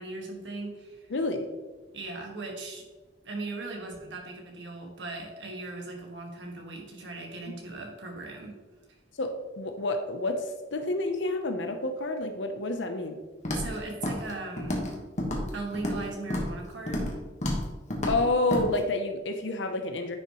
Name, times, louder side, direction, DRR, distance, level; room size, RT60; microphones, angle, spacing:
voice 1, 0.0-1.1 1.9-2.9 3.2-8.5 13.5-14.8 15.5-17.2, right 2 dB, 80° right, 1 dB, 1.7 m, -38 dB
voice 2, 1.1-1.5 9.2-13.2 18.1-20.2, left 2 dB, 85° left, 6 dB, 0.7 m, -29 dB
Walk footsteps, 13.4-13.7 14.0-14.3 14.6-14.9 15.2-16.0 16.3-16.5 16.9-17.1 17.4-17.6 17.9-18.2 18.5-18.6, left 1 dB, 40° left, 1.4 m, -30 dB
9.8 x 5.7 x 3.0 m, 1.3 s
head